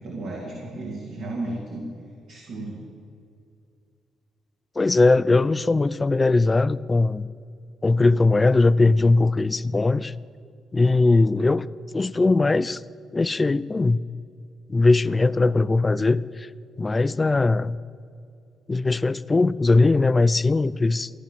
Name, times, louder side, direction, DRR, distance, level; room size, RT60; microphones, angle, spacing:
voice 1, 0.0-1.9 2.3-2.8, right 2 dB, 75° right, -2 dB, 2.7 m, -33 dB
voice 2, 4.8-7.2 7.8-10.1 10.7-11.6 11.9-12.8 13.1-14.0 14.7-16.5 16.8-17.8 18.7-21.1, left 3 dB, 25° left, 16 dB, 0.4 m, -20 dB
15.0 x 11.0 x 7.4 m, 2.4 s
cardioid pair, 90°, 0 cm